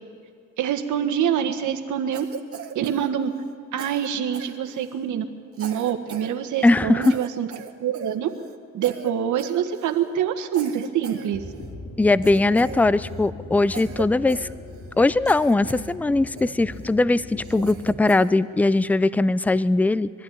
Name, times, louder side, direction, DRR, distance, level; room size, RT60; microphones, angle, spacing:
voice 1, 0.6-2.2 2.7-3.3 3.7-5.2 5.6-7.5 7.8-8.3 8.7-11.4, right 9 dB, 75° right, 7 dB, 1.5 m, -25 dB
Cough, 2.1-3.5 3.8-5.1 5.5-6.3 6.6-6.7 7.0-8.6 8.8-9.1 9.4-10.1 10.5-11.7 12.2-13.3 13.7-15.0 15.3-15.9 16.4-16.9 17.4-18.3, right 6 dB, 50° right, 1.7 m, -39 dB
voice 2, 6.6-7.2 12.0-14.5 15.0-20.2, left 2 dB, 5° left, 17 dB, 0.4 m, -20 dB
sound 1, 11.3-18.0, left 2 dB, 70° left, 3.8 m, -39 dB
22.5 x 12.0 x 9.9 m, 2.2 s
cardioid pair, 90°, 30 cm